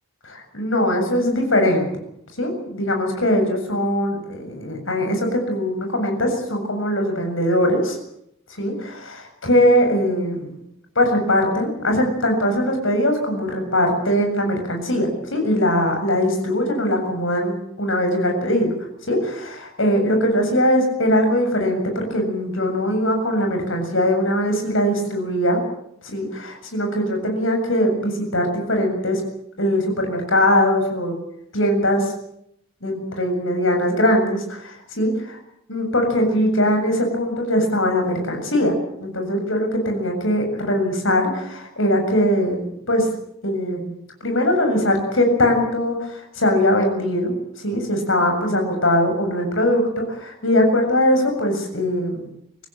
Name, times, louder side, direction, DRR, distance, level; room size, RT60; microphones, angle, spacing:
voice 1, 0.3-1.9 2.4-8.0 8.6-10.6 11.0-18.7 19.1-25.6 26.0-29.2 29.6-31.2 31.5-32.1 32.8-35.4 35.7-38.7 39.0-43.1 43.4-43.9 44.2-52.3, left 1 dB, 70° left, 4 dB, 7.4 m, -21 dB
25.0 x 16.5 x 9.1 m, 0.76 s
head